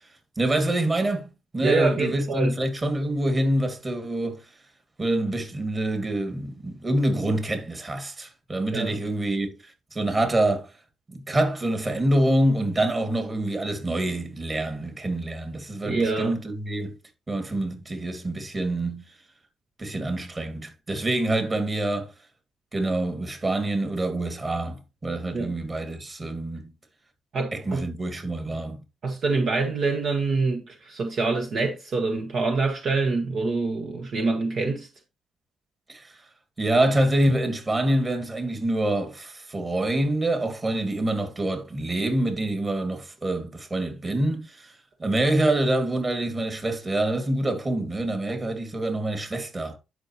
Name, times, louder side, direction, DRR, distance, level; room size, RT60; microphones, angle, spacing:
voice 1, 0.4-4.4 5.0-10.7 11.1-17.0 17.3-19.1 19.8-22.1 22.7-26.7 27.5-28.8 35.9-36.2 36.6-44.7 45.0-49.8, right 1 dB, 25° right, 2.5 m, -26 dB
voice 2, 1.6-2.5 8.7-9.0 15.8-16.4 25.3-25.5 27.3-27.8 29.0-34.9, right 3 dB, 60° right, 1.6 m, -25 dB
11.0 x 5.4 x 3.1 m
cardioid pair, 90°, 0 cm